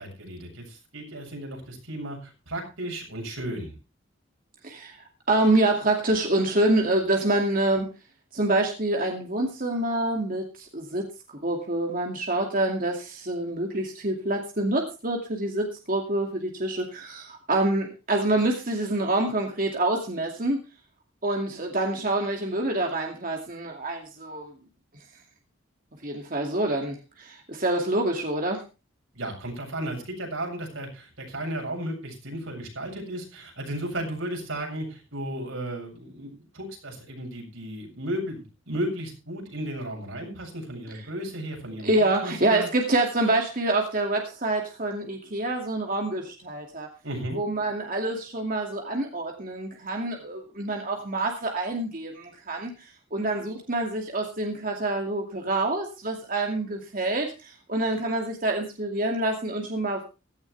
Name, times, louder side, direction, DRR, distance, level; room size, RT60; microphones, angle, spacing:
voice 1, 0.0-3.7 29.1-42.7 47.0-47.4, right 1 dB, 85° right, 1 dB, 7.8 m, -34 dB
voice 2, 4.6-7.9 8.3-20.6 21.2-24.5 26.0-28.6 41.8-46.9 47.3-60.0, right 2 dB, 45° right, 2 dB, 2.4 m, -26 dB
16.5 x 14.5 x 3.4 m, 0.30 s
head